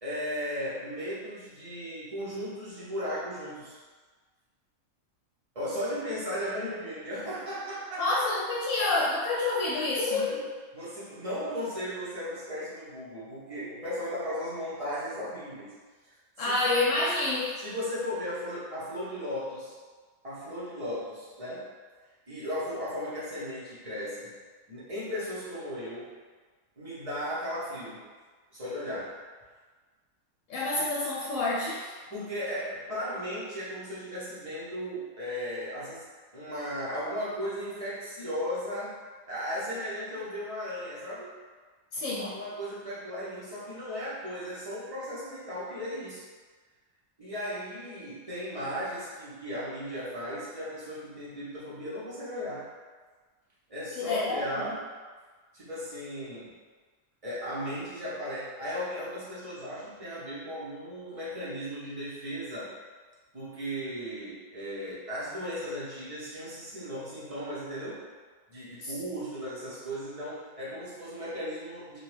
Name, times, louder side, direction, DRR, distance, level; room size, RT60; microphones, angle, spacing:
voice 1, 0.0-3.8 5.5-8.1 10.0-15.7 16.0-16.5 17.6-19.7 20.2-21.7 22.3-24.3 24.7-26.1 26.8-28.0 28.5-29.2 32.1-36.0 36.3-39.0 39.3-41.3 42.2-46.2 47.2-52.7 53.7-54.9 55.5-56.5 57.2-62.7 63.3-68.0 68.5-72.0, equal, 30° right, -10 dB, 0.8 m, -36 dB
voice 2, 8.0-10.2 16.4-17.5 30.5-31.9 41.9-42.3 54.0-54.7 68.8-68.9, left 2 dB, 70° left, -6 dB, 0.9 m, -28 dB
2.8 x 2.3 x 3.3 m, 1.4 s
omnidirectional pair, 1.5 m